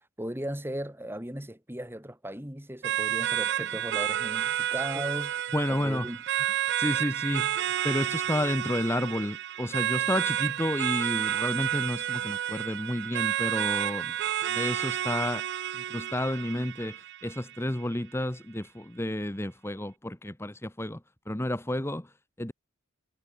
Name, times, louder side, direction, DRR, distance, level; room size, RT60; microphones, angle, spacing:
voice 1, 0.2-6.2, right 1 dB, 10° right, 3.5 m, -37 dB
sound 1, 2.8-17.8, right 11 dB, 55° right, 0.4 m, -30 dB
voice 2, 5.5-6.1 6.8-14.2 14.5-15.5 15.7-21.0 21.3-22.1 22.4-22.5, left 1 dB, 10° left, 1.1 m, -31 dB
head